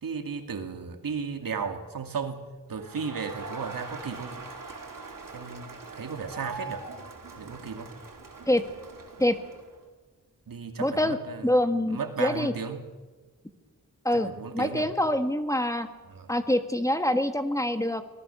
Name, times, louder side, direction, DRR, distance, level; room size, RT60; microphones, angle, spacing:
voice 1, 0.0-2.4 2.7-4.4 5.3-6.9 7.4-7.9 10.5-11.6 11.9-12.8 14.1-14.9 16.1-16.3, right 5 dB, 90° right, 6 dB, 2.5 m, -35 dB
Crowd, 2.7-9.8, right 3 dB, 75° right, 4.4 m, -42 dB
voice 2, 10.8-11.2 11.4-12.5 14.0-15.9 16.3-18.0, left 1 dB, 10° left, 8 dB, 1.8 m, -25 dB
25.5 x 19.5 x 7.1 m, 1.3 s
wide cardioid pair, 100°, 33 cm